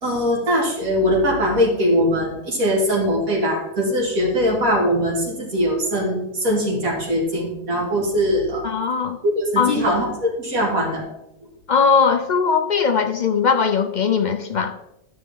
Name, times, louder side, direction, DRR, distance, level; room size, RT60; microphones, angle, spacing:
voice 1, 0.0-8.6 9.2-11.1, equal, 85° right, -4 dB, 2.6 m, -21 dB
voice 2, 8.6-9.2 9.6-10.0 11.7-14.7, left 6 dB, 50° left, 6 dB, 0.5 m, -19 dB
11.5 x 6.6 x 3.7 m, 0.87 s
omnidirectional pair, 1.4 m